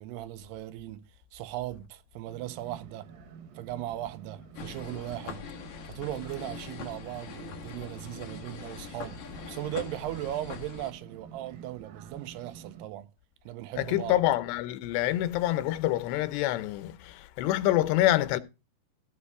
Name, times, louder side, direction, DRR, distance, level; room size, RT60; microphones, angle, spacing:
voice 1, 0.0-3.1 3.5-5.5 5.9-13.1 13.5-14.2, right 14 dB, 80° right, 2.7 m, -38 dB
sound 1, 2.3-12.8, right 7 dB, 65° right, 2.9 m, -49 dB
sound 2, 4.5-10.9, left 7 dB, 55° left, 2.5 m, -43 dB
voice 2, 13.8-18.4, left 14 dB, 85° left, 2.9 m, -26 dB
16.0 x 5.4 x 4.8 m
omnidirectional pair, 4.9 m